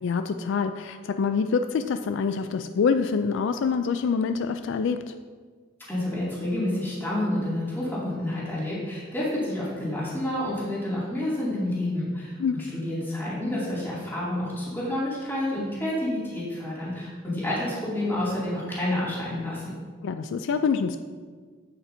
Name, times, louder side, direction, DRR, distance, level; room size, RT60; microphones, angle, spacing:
voice 1, 0.0-5.1 12.4-12.5 20.0-21.0, left 5 dB, 65° left, 9 dB, 0.3 m, -26 dB
voice 2, 5.9-19.7, left 1 dB, 10° left, -8 dB, 2.5 m, -29 dB
8.5 x 8.5 x 2.7 m, 1.5 s
head